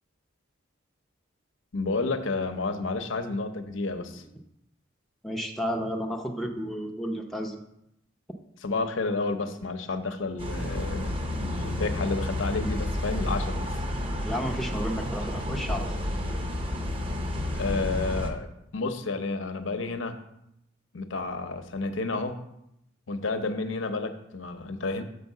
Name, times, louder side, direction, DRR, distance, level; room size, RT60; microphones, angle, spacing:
voice 1, 1.7-4.2 8.6-13.7 17.5-18.5 18.7-20.2 20.9-22.4 23.1-25.0, left 3 dB, 80° left, 8 dB, 0.8 m, -30 dB
voice 2, 5.2-7.6 14.2-15.9, equal, ahead, 1 dB, 0.6 m, -32 dB
sound 1, 10.4-18.3, left 1 dB, 30° right, 0.8 m, -30 dB
6.8 x 4.7 x 6.5 m, 0.80 s
head